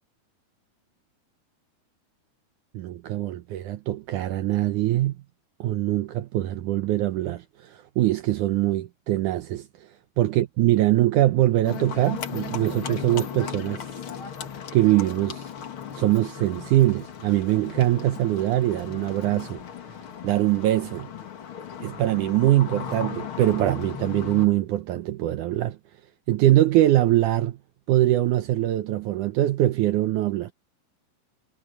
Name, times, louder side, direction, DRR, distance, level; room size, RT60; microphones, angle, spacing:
voice 1, 2.7-5.2 5.6-9.9 10.2-13.8 14.7-15.5 15.9-19.6 20.2-21.1 21.8-25.8 26.3-27.6 27.9-30.5, right 14 dB, 85° right, 1.8 m, -23 dB
Livestock farm animals working animals, 11.6-24.5, left 8 dB, 50° left, 1.8 m, -36 dB
omnidirectional pair, 4.5 m